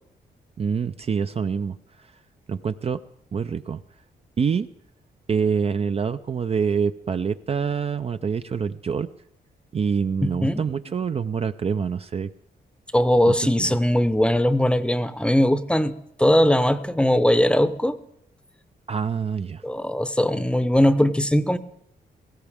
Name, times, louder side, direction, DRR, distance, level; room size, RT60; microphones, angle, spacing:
voice 1, 0.6-1.8 2.5-3.0 3.3-3.8 4.4-4.7 5.3-9.1 9.7-12.3 13.3-13.7 18.9-19.6, right 6 dB, 35° right, 10 dB, 0.4 m, -26 dB
voice 2, 10.2-10.6 12.9-15.9 16.2-18.0 19.6-21.6, left 1 dB, 5° left, 12 dB, 0.7 m, -20 dB
18.5 x 15.5 x 3.5 m, 0.75 s
cardioid pair, 100°, 17 cm